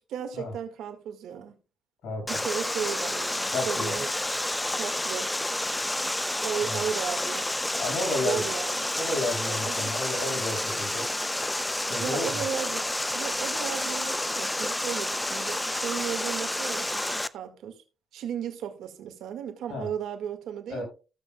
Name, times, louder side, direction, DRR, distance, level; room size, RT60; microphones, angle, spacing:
voice 1, 0.0-1.5 2.3-4.1 4.7-5.3 6.4-7.5 8.2-9.0 9.7-9.9 12.0-12.9 13.1-17.8 18.1-20.8, right 8 dB, 80° right, 1.8 m, -35 dB
voice 2, 2.0-2.4 3.5-4.0 6.6-6.8 7.8-8.5 8.9-11.1 11.9-12.4 19.7-19.9 20.7-20.8, left 2 dB, 75° left, 5.8 m, -32 dB
Water, 2.3-17.3, left 1 dB, 10° left, 0.5 m, -30 dB
15.5 x 7.4 x 2.3 m
cardioid pair, 90°, 0 cm